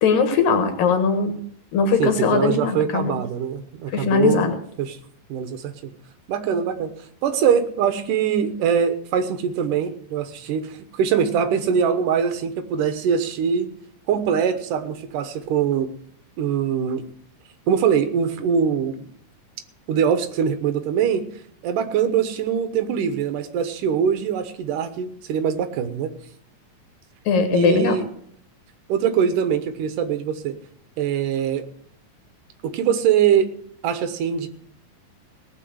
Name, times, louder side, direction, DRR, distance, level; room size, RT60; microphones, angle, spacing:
voice 1, 0.0-1.4 1.7-3.2 3.9-4.5 27.3-28.0, left 5 dB, 85° left, 6 dB, 3.2 m, -20 dB
voice 2, 2.0-4.5 4.8-5.0 5.3-5.9 6.3-6.9 7.2-13.7 14.1-15.9 16.4-17.0 17.7-19.1 19.9-21.2 21.6-26.1 27.5-28.1 28.9-30.5 31.0-31.6 32.6-33.5 33.8-34.5, right 7 dB, 75° right, 9 dB, 2.7 m, -22 dB
18.0 x 6.1 x 7.8 m, 0.62 s
omnidirectional pair, 3.8 m